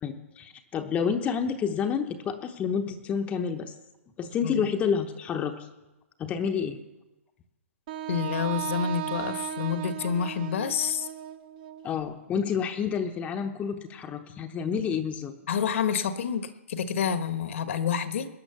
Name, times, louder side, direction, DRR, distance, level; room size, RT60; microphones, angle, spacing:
voice 1, 0.0-3.7 4.2-5.5 6.2-6.8 11.8-15.3, left 7 dB, 15° left, 6 dB, 0.9 m, -29 dB
Wind instrument woodwind instrument, 7.9-11.9, right 12 dB, 40° right, 1.0 m, -36 dB
voice 2, 8.1-11.1 15.5-18.3, left 7 dB, 60° left, 10 dB, 1.4 m, -28 dB
19.5 x 10.0 x 6.8 m, 1.0 s
hypercardioid pair, 145°, 8 cm